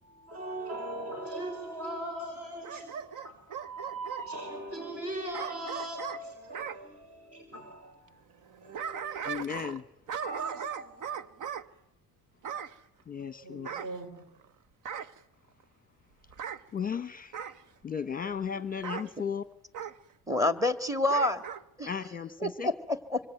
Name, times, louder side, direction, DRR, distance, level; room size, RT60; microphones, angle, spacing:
voice 1, 0.0-8.2 8.6-9.3 10.2-11.2 13.4-14.1, right 1 dB, 40° right, 5 dB, 5.1 m, -40 dB
Bark / Growling, 2.6-4.3 5.3-6.8 8.4-9.8 10.1-11.7 12.4-12.8 13.6-14.4 14.8-15.2 16.3-16.6 17.3-17.6 18.8-19.1 19.7-20.0 21.1-21.6 22.0-22.1, right 8 dB, 60° right, 1.2 m, -38 dB
voice 2, 9.2-9.8 13.1-13.7 16.7-17.5 17.8-19.4 21.9-22.7, left 7 dB, 25° left, 13 dB, 1.0 m, -35 dB
voice 3, 20.3-21.4 21.8-21.9 22.4-23.2, left 2 dB, 10° right, 11 dB, 1.8 m, -28 dB
25.5 x 24.0 x 9.2 m, 0.83 s
cardioid pair, 125°, 36 cm